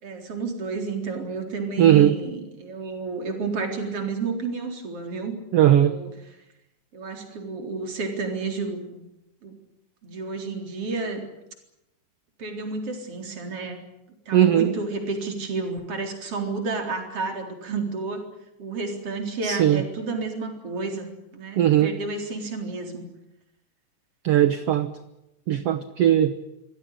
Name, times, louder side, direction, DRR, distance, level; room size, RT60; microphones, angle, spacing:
voice 1, 0.0-5.4 5.8-6.1 6.9-9.0 9.4-9.5 10.0-11.3 12.4-13.8 14.3-18.3 18.6-23.0, right 4 dB, 45° right, 4 dB, 4.7 m, -31 dB
voice 2, 1.8-2.2 5.5-6.0 14.3-14.7 19.4-19.8 21.6-22.0 24.2-24.9 25.5-26.3, right 11 dB, 65° right, 11 dB, 1.6 m, -18 dB
26.0 x 17.0 x 10.0 m, 0.87 s
omnidirectional pair, 3.8 m